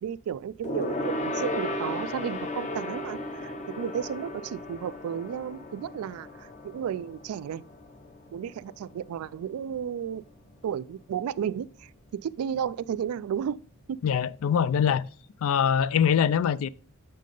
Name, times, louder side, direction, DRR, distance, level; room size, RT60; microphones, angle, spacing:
voice 1, 0.0-7.6 8.3-10.2 10.6-13.6 13.9-14.0, right 8 dB, 80° right, 0.3 m, -33 dB
Gong, 0.6-10.4 10.7-11.0 11.3-11.4, left 1 dB, 35° left, 0.7 m, -36 dB
voice 2, 14.0-15.1 15.4-16.7, left 8 dB, 70° left, 0.3 m, -23 dB
7.4 x 5.4 x 3.7 m
head